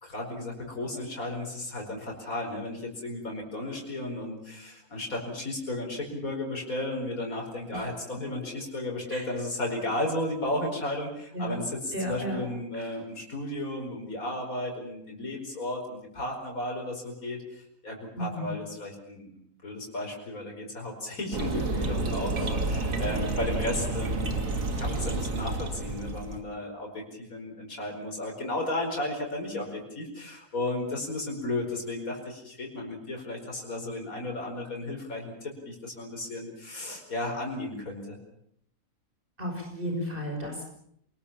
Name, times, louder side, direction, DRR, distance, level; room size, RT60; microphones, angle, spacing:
voice 1, 0.0-38.2, left 1 dB, 80° left, 1 dB, 5.3 m, -34 dB
voice 2, 11.9-12.4 18.2-18.5 22.3-22.5 39.4-40.6, equal, 40° right, 1 dB, 6.0 m, -33 dB
sound 1, 21.3-26.4, right 2 dB, 70° right, 2.5 m, -30 dB
26.5 x 20.0 x 7.2 m, 0.72 s
omnidirectional pair, 1.5 m